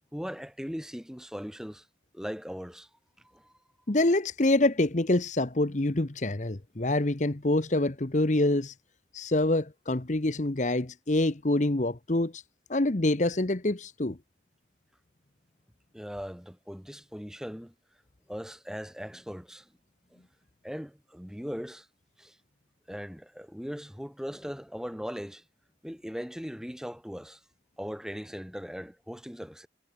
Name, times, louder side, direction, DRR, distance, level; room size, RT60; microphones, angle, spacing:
voice 1, 0.1-1.8 2.1-2.9 3.3-3.5 15.9-17.7 18.3-19.7 20.1-20.2 20.6-21.9 22.2-22.4 22.9-25.4 25.8-27.4 27.8-29.7, equal, 5° right, 3.6 m, -39 dB
voice 2, 3.9-8.7 9.1-12.4 12.7-14.2, left 2 dB, 40° left, 1.0 m, -26 dB
head